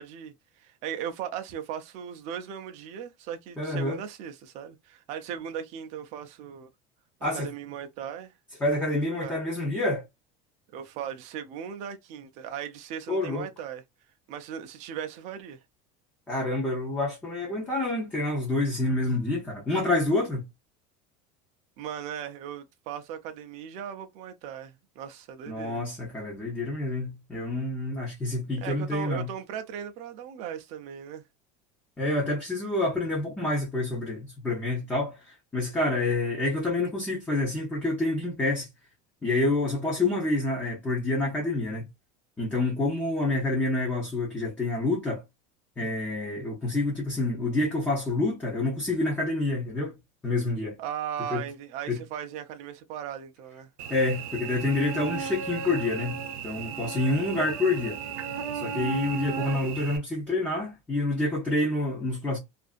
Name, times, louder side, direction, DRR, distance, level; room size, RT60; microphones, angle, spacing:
voice 1, 0.0-6.7 7.2-8.3 9.1-9.4 10.7-13.8 14.3-15.6 21.8-25.8 28.6-31.2 50.8-53.7, right 9 dB, 40° right, 0.5 m, -38 dB
voice 2, 3.6-4.0 7.2-7.5 8.6-10.0 13.1-13.5 16.3-20.4 25.5-29.3 32.0-38.7 39.2-41.9 42.4-45.2 45.8-49.9 50.2-50.8 51.3-51.4 51.9-52.0 53.9-56.2 56.4-58.0 58.5-62.4, left 2 dB, 10° left, 0.6 m, -28 dB
Cricket / Buzz, 53.8-60.0, right 7 dB, 85° right, 0.7 m, -35 dB
2.6 x 2.5 x 2.4 m
cardioid pair, 175°, 18 cm